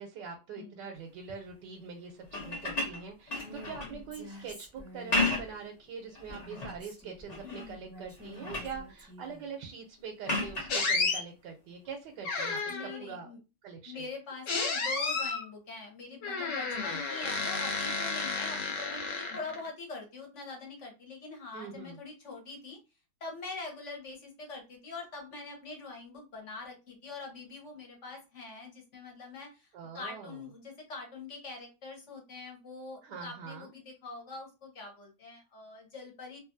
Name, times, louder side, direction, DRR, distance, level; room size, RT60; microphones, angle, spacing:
voice 1, 0.0-13.3 13.6-14.0 21.5-22.0 29.7-30.4 33.0-33.7, right 5 dB, 90° right, 3 dB, 1.2 m, -43 dB
voice 2, 0.6-0.9 3.8-4.0 7.4-7.8 12.7-13.4 13.8-22.8 23.2-36.4, left 3 dB, 50° left, 0 dB, 1.2 m, -44 dB
sound 1, 2.2-4.0 4.9-5.7 6.1-6.8 7.3-7.8 8.1-8.8 10.2-10.8 12.6-12.7, left 2 dB, 35° left, 0.7 m, -33 dB
Female speech woman speaking, 3.4-3.8 4.1-5.4 6.3-7.4 7.9-9.5, equal, 20° right, 0.4 m, -49 dB
sound 2, 10.7-11.2 12.2-13.0 14.5-15.4 16.2-19.7, left 4 dB, 85° left, 1.4 m, -32 dB
2.9 x 2.5 x 2.6 m, 0.29 s
omnidirectional pair, 1.8 m